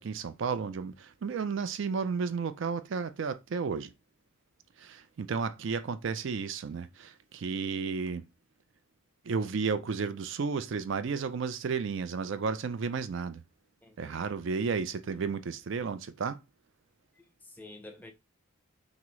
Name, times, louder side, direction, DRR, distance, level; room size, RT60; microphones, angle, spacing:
voice 1, 0.0-3.9 4.8-8.2 9.2-13.4 14.0-16.4, right 5 dB, 60° right, 0.4 m, -33 dB
voice 2, 13.8-14.4 17.2-18.1, left 2 dB, 10° left, 0.4 m, -50 dB
5.9 x 2.1 x 3.1 m
head